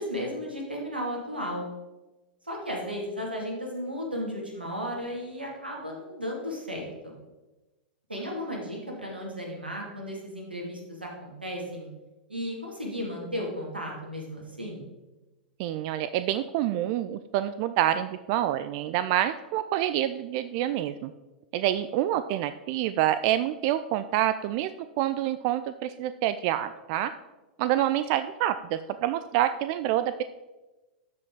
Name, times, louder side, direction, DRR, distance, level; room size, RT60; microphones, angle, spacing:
voice 1, 0.0-1.7 2.4-7.1 8.1-11.9 12.3-14.9, equal, 85° right, -1 dB, 2.4 m, -34 dB
voice 2, 15.6-21.1 21.5-24.7 25.0-27.1 27.6-30.2, right 12 dB, 45° right, 12 dB, 0.3 m, -27 dB
13.0 x 5.1 x 3.9 m, 1.1 s
figure-of-eight pair, 95°, 5 cm